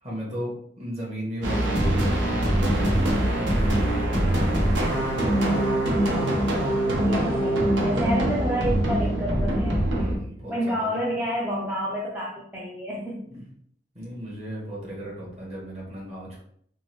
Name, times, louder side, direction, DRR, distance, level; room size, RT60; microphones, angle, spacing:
voice 1, 0.0-4.5 9.9-11.0 13.3-13.5 13.9-16.4, equal, 35° right, -5 dB, 1.2 m, -36 dB
sound 1, 1.4-10.2, right 1 dB, 80° right, 0.7 m, -23 dB
voice 2, 7.0-9.9 10.5-13.3, equal, 10° right, -6 dB, 0.4 m, -29 dB
3.6 x 2.0 x 3.0 m, 0.65 s
head